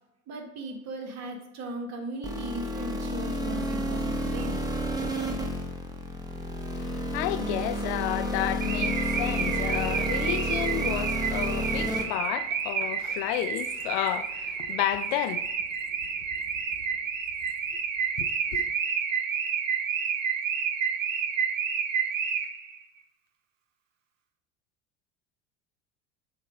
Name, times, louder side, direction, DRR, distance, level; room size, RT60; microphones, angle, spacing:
voice 1, 0.3-4.6, right 2 dB, 45° right, 1.5 m, -37 dB
sound 1, 2.2-12.0, equal, 10° right, 1.0 m, -31 dB
voice 2, 6.6-15.5 18.2-18.7, left 14 dB, 55° left, 0.5 m, -32 dB
Car / Alarm, 8.6-22.8, right 6 dB, 85° right, 0.8 m, -30 dB
6.9 x 3.7 x 5.2 m
hypercardioid pair, 75°, 38 cm